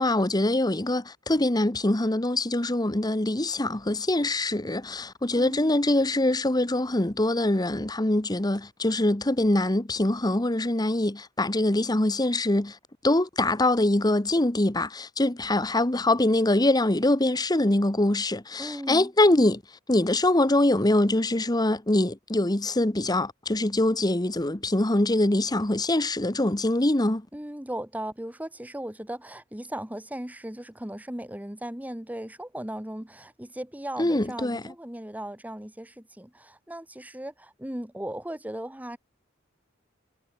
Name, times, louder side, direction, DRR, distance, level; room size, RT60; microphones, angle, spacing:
voice 1, 0.0-12.8 13.0-19.6 19.9-27.3 34.0-34.7, left 1 dB, 20° left, 1.3 m, -24 dB
voice 2, 5.4-5.7 18.6-19.1 27.3-39.0, right 1 dB, 10° right, 1.3 m, -37 dB
head